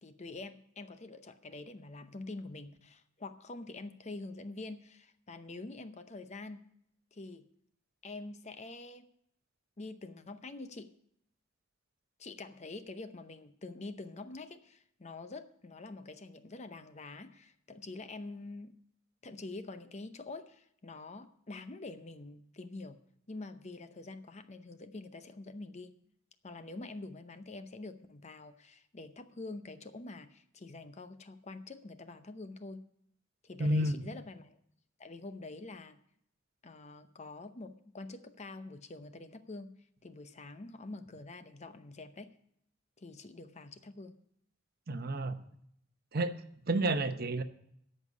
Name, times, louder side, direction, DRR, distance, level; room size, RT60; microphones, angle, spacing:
voice 1, 0.0-6.7 7.1-7.4 8.0-9.1 9.8-10.9 12.2-18.7 19.2-23.0 23.3-26.0 26.4-32.8 33.4-34.6 35.0-36.0 36.6-39.7 40.0-42.3 43.0-44.1, left 2 dB, 35° left, 10 dB, 0.7 m, -46 dB
voice 2, 33.6-34.0 44.9-45.4 46.1-46.3 46.7-47.4, right 1 dB, 50° right, 9 dB, 0.8 m, -30 dB
13.5 x 5.5 x 9.5 m, 0.71 s
head